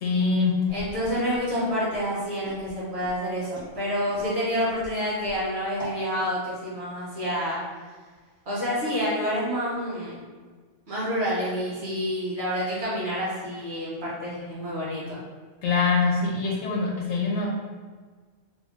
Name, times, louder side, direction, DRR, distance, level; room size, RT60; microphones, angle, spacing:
voice 1, 0.0-0.5 15.6-17.5, left 4 dB, 70° left, -2 dB, 1.1 m, -24 dB
Walk footsteps, 0.7-6.0, equal, 25° left, 1.5 m, -44 dB
voice 2, 0.7-7.6 8.4-10.2 10.9-15.2, equal, 65° right, -8 dB, 1.6 m, -28 dB
3.4 x 2.5 x 3.6 m, 1.5 s
omnidirectional pair, 1.2 m